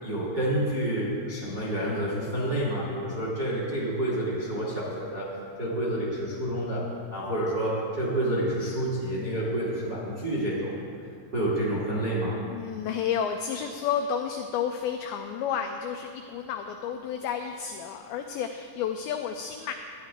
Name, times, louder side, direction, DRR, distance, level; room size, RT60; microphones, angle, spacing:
voice 1, 0.0-5.3 5.6-6.8 7.1-10.7 11.3-12.4, right 1 dB, 40° right, -6 dB, 1.4 m, -28 dB
voice 2, 12.5-19.7, left 8 dB, 85° left, 5 dB, 2.1 m, -31 dB
13.0 x 10.5 x 3.6 m, 2.3 s
omnidirectional pair, 4.9 m